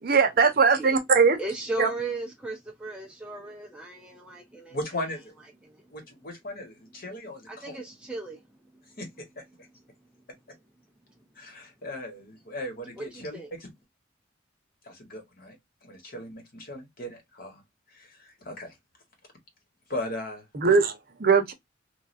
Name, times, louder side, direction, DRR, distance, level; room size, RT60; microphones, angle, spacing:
voice 1, 0.0-1.4 1.8-1.9 20.5-21.5, right 5 dB, 50° right, 0.7 m, -20 dB
voice 2, 1.4-4.8 5.6-5.8 7.5-8.4 13.0-13.1 13.3-13.5, right 2 dB, 5° right, 0.4 m, -36 dB
voice 3, 4.7-5.3 5.9-7.8 9.0-9.4 11.3-13.7 14.8-15.6 15.8-17.6 17.9-18.7 19.9-20.5, left 1 dB, 50° left, 1.2 m, -38 dB
3.2 x 2.3 x 2.4 m
head